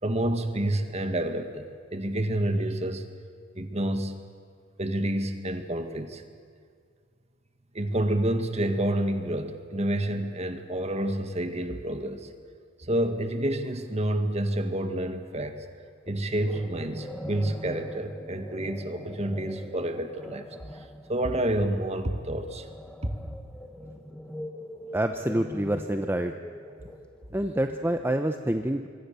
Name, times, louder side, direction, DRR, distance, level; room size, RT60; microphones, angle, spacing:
voice 1, 0.0-3.1 3.6-4.2 4.8-6.2 7.7-12.3 12.8-15.7 16.1-20.5 20.7-22.7 23.0-23.2 26.7-26.9, right 1 dB, 35° right, 7 dB, 1.9 m, -29 dB
sound 1, 16.1-27.4, equal, 5° left, 1.5 m, -42 dB
voice 2, 24.9-26.3 27.3-28.9, right 1 dB, 10° right, 6 dB, 0.8 m, -27 dB
26.0 x 23.5 x 6.9 m, 2.2 s
head